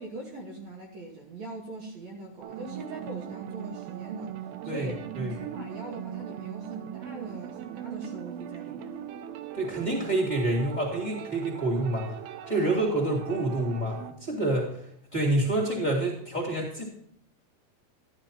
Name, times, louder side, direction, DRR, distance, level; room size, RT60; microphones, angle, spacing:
voice 1, 0.0-9.1, right 2 dB, 55° right, 0 dB, 2.4 m, -41 dB
sound 1, 2.4-14.1, right 10 dB, 85° right, 2.7 m, -40 dB
voice 2, 4.7-5.3 9.5-12.2 12.5-14.8 15.1-16.9, right 2 dB, 15° left, -2 dB, 2.5 m, -28 dB
12.5 x 12.0 x 2.9 m, 0.68 s
omnidirectional pair, 4.2 m